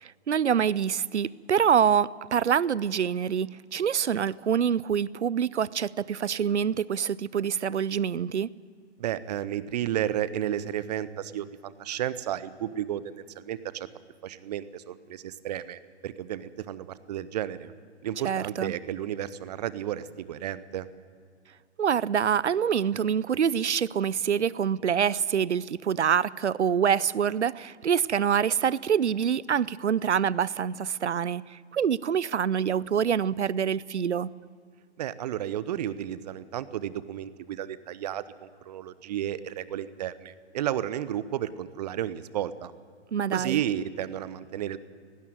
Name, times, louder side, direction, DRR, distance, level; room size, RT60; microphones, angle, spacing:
voice 1, 0.0-8.5 18.2-18.7 21.8-34.3 43.1-43.6, right 8 dB, 75° right, 22 dB, 0.6 m, -26 dB
voice 2, 9.0-13.9 14.2-17.7 18.0-20.9 35.0-42.7 43.3-44.8, right 11 dB, 35° right, 16 dB, 0.8 m, -32 dB
18.0 x 16.0 x 9.3 m, 2.1 s
figure-of-eight pair, 120°, 35 cm